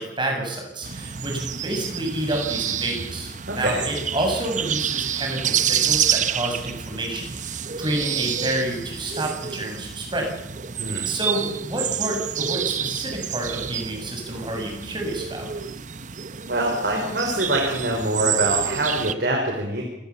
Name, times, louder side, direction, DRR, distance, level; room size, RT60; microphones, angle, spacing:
voice 1, 0.0-7.4 7.8-10.3 11.0-15.5, right 1 dB, 25° right, 1 dB, 7.1 m, -29 dB
sound 1, 0.8-19.1, right 8 dB, 40° right, 1.0 m, -28 dB
voice 2, 3.5-3.8 10.8-11.1 16.5-19.8, right 1 dB, 60° right, 0 dB, 5.2 m, -24 dB
28.0 x 19.5 x 7.2 m, 0.86 s
head